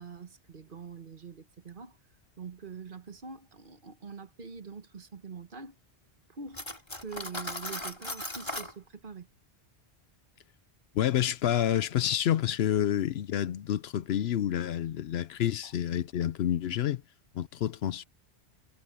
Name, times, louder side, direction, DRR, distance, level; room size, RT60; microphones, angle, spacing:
voice 1, 0.0-2.0 2.4-5.7 6.3-6.7 7.0-9.3 15.6-15.7, right 5 dB, 50° right, 1.4 m, -44 dB
Cutlery silverware, 6.5-8.7, left 1 dB, 25° left, 2.4 m, -37 dB
voice 2, 10.9-17.0 17.3-18.0, left 10 dB, 70° left, 0.8 m, -28 dB
omnidirectional pair, 1.1 m